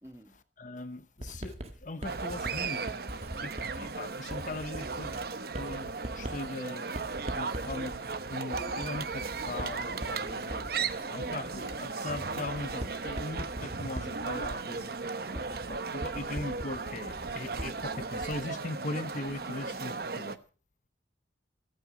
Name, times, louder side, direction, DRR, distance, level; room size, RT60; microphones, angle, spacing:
voice 1, 0.0-0.4 10.6-11.3 15.3-15.7, equal, 15° right, 1.9 m, -53 dB
voice 2, 0.6-2.9 3.4-5.2 5.5-7.0 7.3-10.7 11.1-14.9 15.9-20.4, left 2 dB, 45° left, 0.9 m, -39 dB
Writing, 1.2-18.5, right 1 dB, 35° right, 1.7 m, -43 dB
sound 1, 2.0-20.4, right 4 dB, 55° right, 0.9 m, -36 dB
15.5 x 14.5 x 5.2 m
head